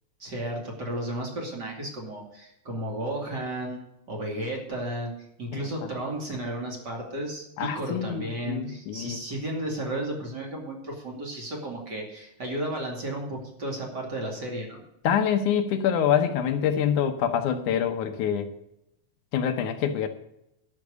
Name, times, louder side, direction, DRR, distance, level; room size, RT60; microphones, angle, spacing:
voice 1, 0.2-3.8 4.1-5.1 5.4-14.8, right 1 dB, 35° right, 0 dB, 2.8 m, -33 dB
voice 2, 5.5-5.9 7.6-9.2 15.0-18.5 19.3-20.1, left 8 dB, 75° left, 8 dB, 2.3 m, -26 dB
12.0 x 6.5 x 8.1 m, 0.82 s
omnidirectional pair, 3.7 m